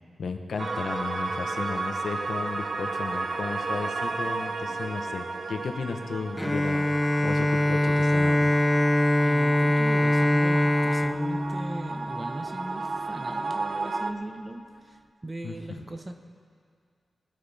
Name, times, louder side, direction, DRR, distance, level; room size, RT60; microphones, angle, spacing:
voice 1, 0.2-6.9 7.2-8.5 15.4-15.8, left 4 dB, 70° left, 5 dB, 1.0 m, -34 dB
sound 1, 0.6-14.1, right 3 dB, 45° right, 0.7 m, -33 dB
Bowed string instrument, 6.4-12.4, left 1 dB, 10° left, 0.3 m, -23 dB
voice 2, 9.2-16.1, right 1 dB, 20° right, 5 dB, 0.9 m, -38 dB
21.0 x 9.6 x 3.5 m, 2.1 s
wide cardioid pair, 95°, 0 cm